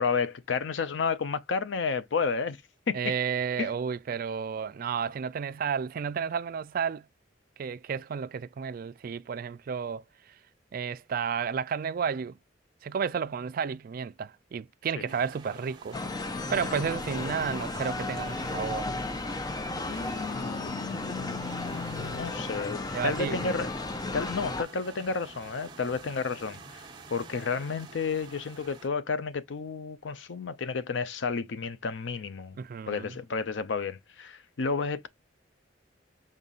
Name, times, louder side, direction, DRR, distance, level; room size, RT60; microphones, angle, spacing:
voice 1, 0.0-2.6 2.9-3.0 3.6-3.7 15.0-15.1 19.9-23.7 24.1-32.6 32.9-35.1, left 5 dB, 75° left, 0.5 m, -31 dB
voice 2, 2.9-7.0 7.6-10.3 10.7-12.4 12.8-16.0 16.5-18.9 22.9-23.5 32.6-33.2, right 6 dB, 50° right, 0.4 m, -32 dB
sound 1, 15.1-28.9, right 3 dB, 25° right, 1.1 m, -48 dB
sound 2, 15.9-24.6, left 2 dB, 20° left, 0.4 m, -34 dB
5.5 x 3.6 x 2.4 m
head